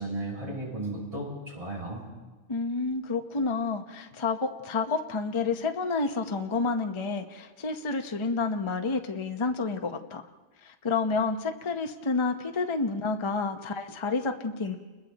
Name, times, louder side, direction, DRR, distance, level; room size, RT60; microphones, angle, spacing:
voice 1, 0.0-2.0, right 1 dB, 25° right, -4 dB, 6.5 m, -35 dB
voice 2, 2.5-10.2 10.6-14.8, left 4 dB, 25° left, 5 dB, 0.8 m, -29 dB
29.5 x 21.5 x 4.1 m, 1.3 s
omnidirectional pair, 1.3 m